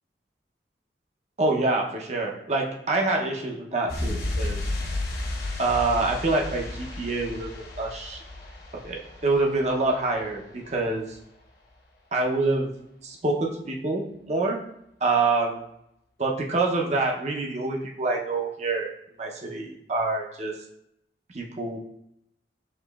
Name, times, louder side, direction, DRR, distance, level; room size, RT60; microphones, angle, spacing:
voice 1, 1.4-4.6 5.6-8.2 8.7-11.0 12.1-12.7 13.0-14.6 15.0-15.6 16.2-18.9 19.2-20.6 21.3-21.8, right 3 dB, 40° right, 0 dB, 0.6 m, -26 dB
sound 1, 3.9-10.4 10.6-10.8, left 2 dB, 60° left, 0.9 m, -33 dB
6.6 x 2.9 x 2.3 m, 0.79 s
head